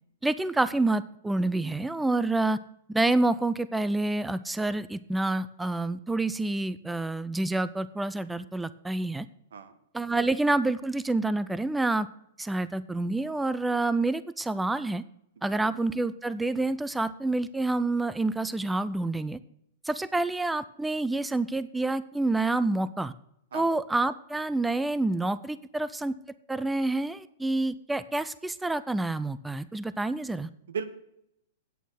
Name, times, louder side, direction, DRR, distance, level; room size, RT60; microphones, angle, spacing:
voice 1, 0.2-2.6 2.9-9.3 9.9-12.1 12.4-15.0 15.4-19.4 19.8-23.1 23.5-26.1 26.5-30.5, right 2 dB, 5° right, 15 dB, 0.4 m, -28 dB
voice 2, 15.4-15.7 23.5-23.7 30.7-30.8, right 6 dB, 85° right, 12 dB, 1.3 m, -36 dB
9.1 x 8.2 x 6.2 m, 0.75 s
hypercardioid pair, 150°, 0 cm